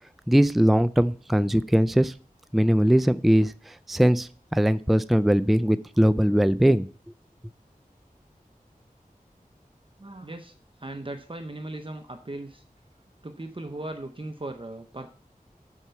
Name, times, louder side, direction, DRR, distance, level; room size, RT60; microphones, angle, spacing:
voice 1, 0.3-2.1 2.5-6.9, equal, ahead, 15 dB, 0.4 m, -21 dB
voice 2, 10.0-12.6 13.2-15.1, right 2 dB, 35° right, 6 dB, 0.8 m, -38 dB
7.3 x 4.6 x 6.9 m, 0.39 s
wide cardioid pair, 40°, 15 cm